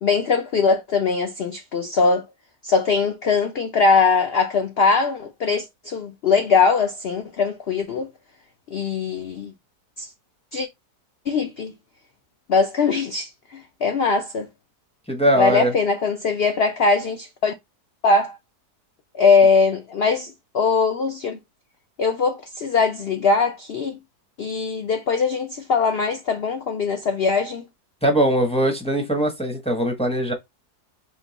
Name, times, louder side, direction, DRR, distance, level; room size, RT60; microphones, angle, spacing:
voice 1, 0.0-2.3 2.6-8.1 8.7-9.5 10.0-10.1 10.5-10.7 11.3-11.7 12.5-14.5 15.3-17.5 18.0-18.4 19.2-21.4 22.0-24.0 24.4-27.6, left 4 dB, 85° left, 0.5 m, -21 dB
voice 2, 15.1-15.7 28.0-30.3, right 1 dB, 5° left, 0.4 m, -21 dB
3.7 x 2.6 x 3.9 m
omnidirectional pair, 1.7 m